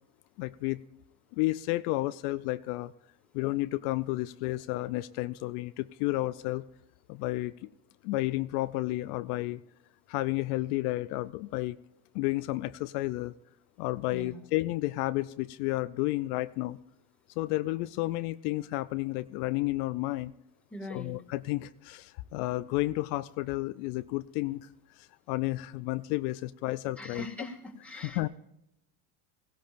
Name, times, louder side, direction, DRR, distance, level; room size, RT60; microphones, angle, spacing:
voice 1, 0.4-0.8 1.3-2.9 3.3-6.6 7.1-7.7 8.0-9.6 10.1-11.8 12.1-13.3 13.8-16.8 17.4-20.3 20.9-24.7 25.0-27.2 28.1-28.3, left 19 dB, 70° left, 13 dB, 0.6 m, -31 dB
voice 2, 14.1-14.5 20.7-21.2 27.0-28.2, left 2 dB, 5° left, 0 dB, 2.0 m, -41 dB
17.0 x 16.5 x 2.5 m, 0.86 s
supercardioid pair, 135°, 47 cm